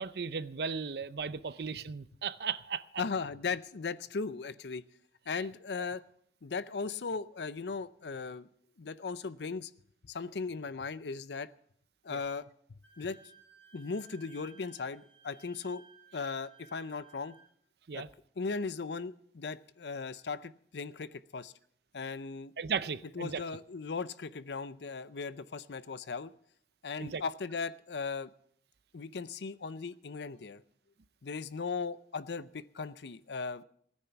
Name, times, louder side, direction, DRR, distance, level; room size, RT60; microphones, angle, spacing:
voice 1, 0.0-2.8 5.8-5.9 12.1-12.2 17.9-18.1 22.6-23.4 27.0-27.2, right 6 dB, 65° right, 0.5 m, -36 dB
voice 2, 3.0-4.8 5.3-6.0 6.4-8.5 8.8-9.7 10.0-11.5 12.0-13.2 13.7-15.8 16.1-17.4 17.9-18.0 18.4-21.5 21.9-22.5 23.1-26.3 26.8-28.3 28.9-30.6 31.2-33.6, left 4 dB, 75° left, 0.6 m, -37 dB
Wind instrument woodwind instrument, 12.8-17.5, right 5 dB, 10° left, 4.4 m, -59 dB
17.0 x 9.7 x 5.8 m
head